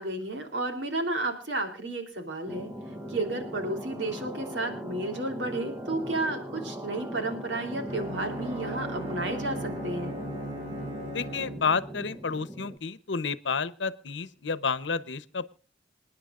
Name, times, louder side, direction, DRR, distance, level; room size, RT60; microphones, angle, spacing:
voice 1, 0.0-2.7 3.1-10.2, right 2 dB, 80° right, 4 dB, 3.3 m, -32 dB
sound 1, 2.5-12.8, equal, 15° right, 0.8 m, -39 dB
Bowed string instrument, 7.9-12.1, equal, 35° right, 5.4 m, -38 dB
voice 2, 11.1-15.5, left 5 dB, 75° left, 16 dB, 0.8 m, -30 dB
27.5 x 10.0 x 2.5 m, 0.38 s
head